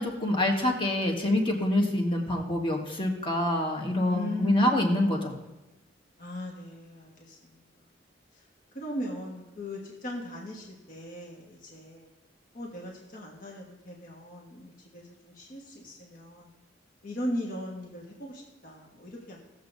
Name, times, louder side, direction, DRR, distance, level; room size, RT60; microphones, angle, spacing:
voice 1, 0.0-5.4, left 1 dB, 25° left, 1 dB, 1.4 m, -26 dB
voice 2, 4.1-4.8 6.2-7.6 8.3-8.4 8.7-12.1 12.5-16.5 17.0-19.4, left 1 dB, 50° left, -2 dB, 1.4 m, -38 dB
17.0 x 7.2 x 2.7 m, 1.1 s
head